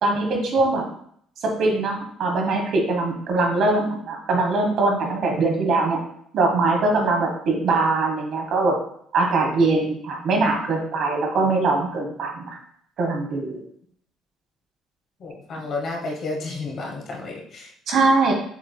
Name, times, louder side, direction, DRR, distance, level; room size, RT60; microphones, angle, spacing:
voice 1, 0.0-0.9 1.4-6.0 6.3-8.7 9.1-12.6 13.0-13.6 17.9-18.3, right 3 dB, 55° right, 2 dB, 1.1 m, -22 dB
voice 2, 15.2-17.7, left 3 dB, 45° left, 0 dB, 1.0 m, -31 dB
7.1 x 3.3 x 2.2 m, 0.66 s
cardioid pair, 145°, 0 cm